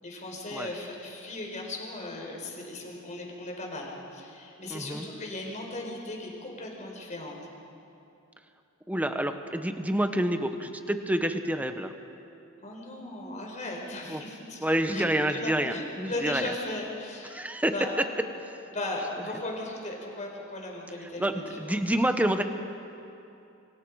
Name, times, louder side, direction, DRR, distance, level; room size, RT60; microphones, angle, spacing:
voice 1, 0.0-7.4 12.6-14.7 14.9-17.4 17.7-17.9 18.7-21.3 21.7-21.8, left 2 dB, 35° left, 0 dB, 4.5 m, -37 dB
voice 2, 4.7-5.1 8.9-11.9 14.1-14.2 14.6-16.5 17.3-17.9 21.2-22.4, right 1 dB, 5° right, 7 dB, 1.1 m, -28 dB
28.5 x 24.5 x 4.9 m, 2.7 s
head